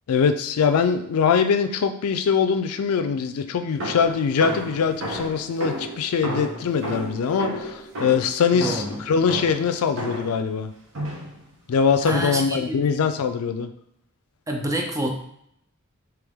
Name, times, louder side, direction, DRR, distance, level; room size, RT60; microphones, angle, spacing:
voice 1, 0.1-10.7 11.7-13.7, left 6 dB, 85° left, 9 dB, 0.4 m, -22 dB
sound 1, 3.8-10.4 10.9-11.4 12.0-12.5, equal, 65° right, 1.0 m, -32 dB
voice 2, 8.5-9.0 12.0-12.9 14.5-15.1, right 1 dB, 15° right, 2 dB, 0.5 m, -28 dB
3.5 x 3.0 x 3.5 m, 0.73 s
head